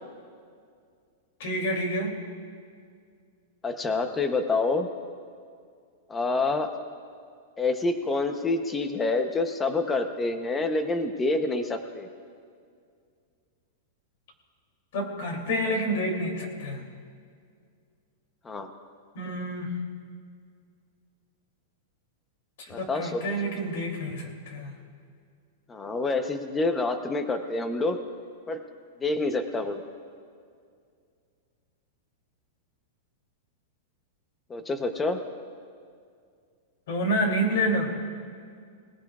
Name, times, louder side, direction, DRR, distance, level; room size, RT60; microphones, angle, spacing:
voice 1, 1.4-2.2 14.9-16.8 19.1-19.8 22.8-24.7 36.9-37.9, equal, 55° left, 2 dB, 2.8 m, -28 dB
voice 2, 3.6-4.9 6.1-6.7 7.6-12.1 18.4-18.7 22.7-23.2 25.7-28.0 28.5-28.6 29.0-29.8 34.5-35.2, left 3 dB, 10° left, 7 dB, 0.7 m, -27 dB
26.0 x 18.5 x 2.4 m, 2.2 s
supercardioid pair, 175°, 0 cm